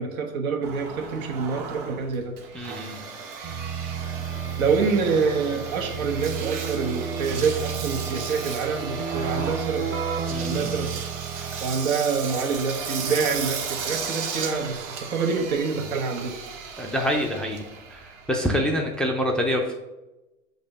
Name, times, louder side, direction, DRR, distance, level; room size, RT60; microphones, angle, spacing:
voice 1, 0.0-2.4 4.6-9.9 10.4-11.0 11.6-16.4, right 5 dB, 80° right, 4 dB, 1.1 m, -26 dB
Engine, 0.6-19.1, right 5 dB, 60° right, 1.2 m, -35 dB
voice 2, 2.5-3.0 10.3-10.7 11.5-11.6 16.8-17.6 17.9-19.7, equal, ahead, 2 dB, 0.3 m, -26 dB
Keyboard (musical), 3.4-11.9, right 7 dB, 25° right, 0.7 m, -32 dB
6.6 x 2.7 x 5.3 m, 1.0 s
hypercardioid pair, 100°, 41 cm